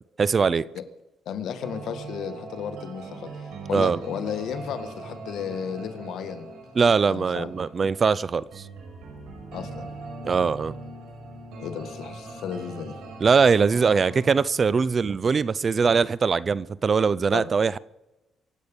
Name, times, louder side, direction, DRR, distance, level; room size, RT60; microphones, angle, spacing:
voice 1, 0.2-0.7 3.7-4.0 6.8-8.6 10.2-10.7 13.2-17.8, right 5 dB, 40° right, 0.5 m, -21 dB
voice 2, 1.2-6.4 7.1-7.5 9.5-9.9 11.6-13.0 17.3-17.5, left 8 dB, 75° left, 1.7 m, -34 dB
sound 1, 1.6-14.4, right 3 dB, 85° right, 6.1 m, -41 dB
24.5 x 8.5 x 5.4 m
cardioid pair, 90°, 0 cm